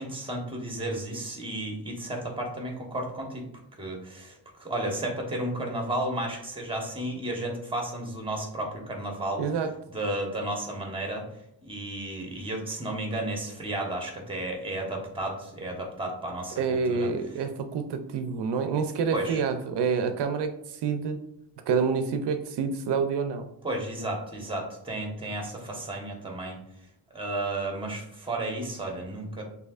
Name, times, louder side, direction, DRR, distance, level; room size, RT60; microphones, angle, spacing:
voice 1, 0.0-3.5 3.8-9.4 9.9-11.2 11.6-17.1 19.1-19.4 23.6-26.6 27.1-29.4, right 1 dB, 15° right, 1 dB, 1.1 m, -33 dB
voice 2, 9.4-9.7 16.6-21.2 21.7-23.5, right 5 dB, 85° right, 8 dB, 0.5 m, -27 dB
6.4 x 2.7 x 2.4 m, 0.80 s
wide cardioid pair, 110°, 40 cm